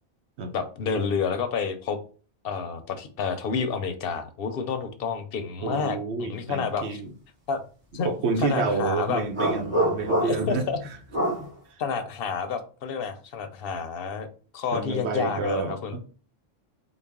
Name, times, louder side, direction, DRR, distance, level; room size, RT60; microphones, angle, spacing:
voice 1, 0.5-2.0 2.4-7.0 7.5-7.6 7.9-8.1 8.4-9.2 10.2-10.8 11.8-14.3 14.5-16.0, left 6 dB, 65° left, 0.7 m, -29 dB
voice 2, 5.6-7.1 8.0-10.7 11.4-11.5 14.7-16.0, right 4 dB, 90° right, 1.0 m, -28 dB
sound 1, 9.3-10.6 11.1-11.5, right 1 dB, 50° right, 1.4 m, -25 dB
4.0 x 2.1 x 3.5 m
omnidirectional pair, 1.1 m